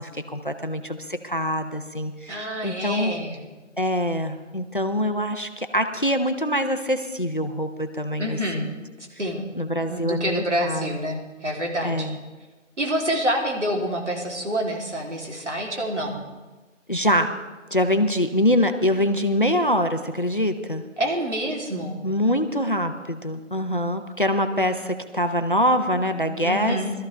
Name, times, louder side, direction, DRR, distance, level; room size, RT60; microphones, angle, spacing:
voice 1, 0.0-3.1 3.8-8.7 9.6-10.9 11.8-12.2 16.9-17.3 17.7-20.8 22.0-26.8, equal, 40° left, 8 dB, 0.7 m, -24 dB
voice 2, 2.3-3.4 8.2-8.6 9.2-9.5 9.9-12.1 12.8-16.2 21.0-22.0 26.4-26.9, equal, 60° right, 0 dB, 3.2 m, -27 dB
20.5 x 13.5 x 3.4 m, 1.2 s
figure-of-eight pair, 175°, 39 cm